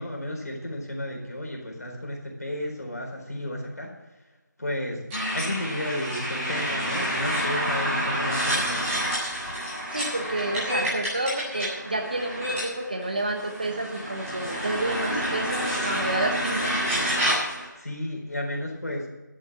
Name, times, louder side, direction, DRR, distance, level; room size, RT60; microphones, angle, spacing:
voice 1, 0.0-3.9 4.6-9.0 17.6-19.1, left 1 dB, 55° left, 0 dB, 4.3 m, -33 dB
sound 1, 5.1-17.7, equal, 5° right, 2.2 m, -29 dB
voice 2, 9.9-16.8, right 2 dB, 25° right, 4 dB, 1.1 m, -30 dB
12.0 x 7.7 x 7.3 m, 1.1 s
figure-of-eight pair, 175°, 10 cm